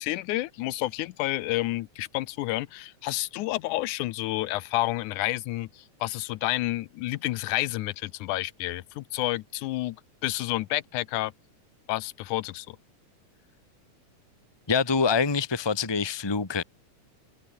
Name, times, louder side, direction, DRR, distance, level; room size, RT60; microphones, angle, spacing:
voice 1, 0.0-10.0 10.2-11.3 11.9-12.8, left 17 dB, 80° left, 2.2 m, -30 dB
voice 2, 14.7-16.6, left 5 dB, 15° left, 1.0 m, -25 dB
omnidirectional pair, 3.5 m